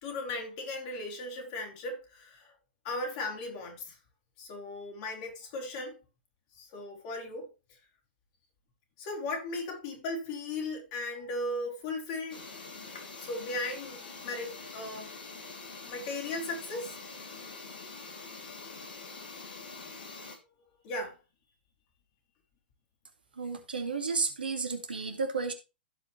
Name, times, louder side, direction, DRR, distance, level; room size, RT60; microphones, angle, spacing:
voice 1, 0.0-2.5 2.8-4.0 4.4-6.0 6.6-7.5 9.0-12.4 12.7-12.9 13.2-15.1 15.8-17.0 20.8-21.2, left 2 dB, 40° left, 3.8 m, -37 dB
sound 1, 12.3-20.4, left 4 dB, 65° left, 3.0 m, -45 dB
voice 2, 23.4-25.5, right 4 dB, 70° right, 2.2 m, -32 dB
16.0 x 5.4 x 3.2 m
figure-of-eight pair, 105°, 5 cm